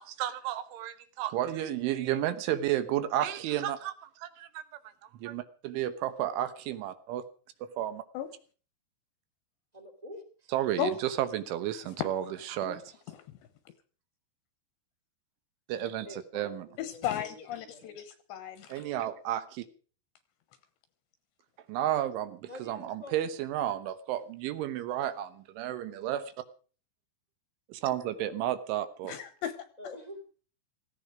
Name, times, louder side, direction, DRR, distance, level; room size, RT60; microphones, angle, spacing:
voice 1, 0.0-4.6 5.2-7.2 7.6-8.0 10.5-12.8 15.7-16.7 18.7-19.7 21.7-26.3 27.7-29.2, right 12 dB, 75° right, 12 dB, 3.3 m, -32 dB
voice 2, 9.7-10.5 16.0-17.9 22.5-23.7 29.8-30.2, left 1 dB, 15° right, 6 dB, 1.2 m, -47 dB
voice 3, 16.8-18.8 29.0-29.5, left 9 dB, 75° left, 11 dB, 2.8 m, -35 dB
17.5 x 15.5 x 5.0 m, 0.40 s
omnidirectional pair, 5.9 m